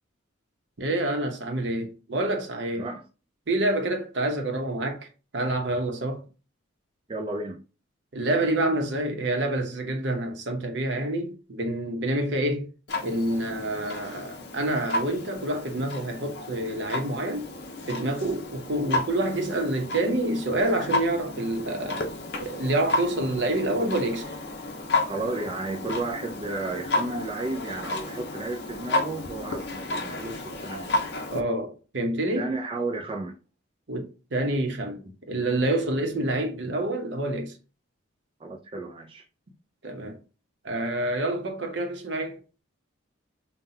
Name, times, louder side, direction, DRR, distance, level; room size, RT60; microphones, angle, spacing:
voice 1, 0.8-2.9 3.5-5.1 5.3-6.2 8.1-12.7 13.0-17.5 17.9-22.1 22.4-24.2 31.3-32.5 33.9-35.0 35.3-37.5 39.8-40.2 40.6-42.4, right 1 dB, 60° right, 0.8 m, -27 dB
voice 2, 7.1-7.6 25.0-30.9 32.3-33.3 38.4-39.2, right 2 dB, 25° right, 0.4 m, -33 dB
Clock, 12.9-31.4, left 2 dB, 55° left, 0.7 m, -32 dB
5.6 x 2.3 x 2.7 m
head